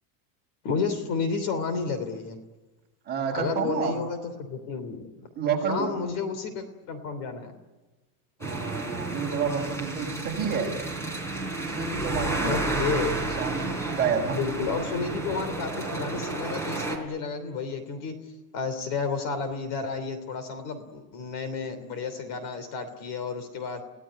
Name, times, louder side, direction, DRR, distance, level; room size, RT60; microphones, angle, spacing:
voice 1, 0.6-2.4 3.3-5.1 5.7-7.5 12.4-13.2 14.3-18.2 18.5-23.8, left 5 dB, 40° left, 10 dB, 3.1 m, -31 dB
voice 2, 3.1-3.9 5.4-5.9 8.4-10.8 11.8-12.7 13.4-14.4, right 6 dB, 20° right, 0 dB, 5.6 m, -29 dB
sound 1, 8.4-17.0, right 2 dB, 5° left, 3.7 m, -31 dB
29.5 x 17.5 x 9.7 m, 1.2 s
supercardioid pair, 155°, 47 cm